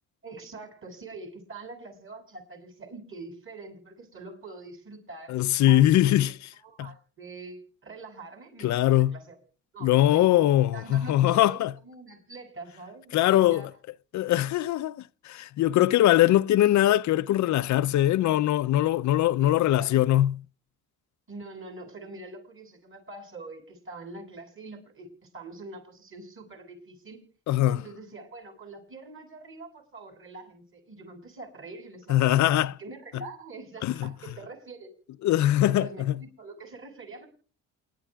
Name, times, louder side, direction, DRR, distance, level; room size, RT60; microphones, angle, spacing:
voice 1, 0.2-6.3 6.6-9.4 9.7-10.3 10.7-13.7 19.4-20.0 21.3-27.2 27.6-34.9 35.6-37.3, right 3 dB, 45° right, 7.4 m, -44 dB
voice 2, 5.3-6.3 6.8-6.9 8.6-9.1 9.8-11.7 13.1-13.7 14.1-15.0 15.2-20.4 27.5-27.8 32.1-32.7 33.8-34.1 35.2-36.2, left 13 dB, 70° left, 0.5 m, -22 dB
28.0 x 12.0 x 2.3 m
cardioid pair, 90°, 30 cm